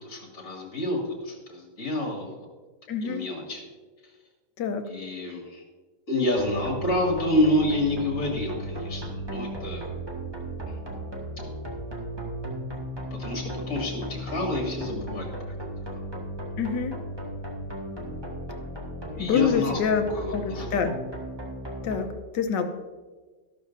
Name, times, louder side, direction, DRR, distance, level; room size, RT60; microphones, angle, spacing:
voice 1, 0.0-2.3 3.0-3.6 4.9-5.6 6.1-9.0 9.3-9.9 13.1-15.3 19.2-19.8 20.1-20.7, left 1 dB, 55° left, -1 dB, 2.8 m, -28 dB
voice 2, 2.9-3.3 4.6-4.9 16.6-17.0 19.1-20.0 20.3-20.9 21.8-22.7, left 6 dB, 85° left, 7 dB, 1.5 m, -26 dB
sound 1, 6.4-22.0, right 1 dB, 15° right, 1.5 m, -36 dB
13.0 x 12.0 x 2.6 m, 1.3 s
omnidirectional pair, 1.9 m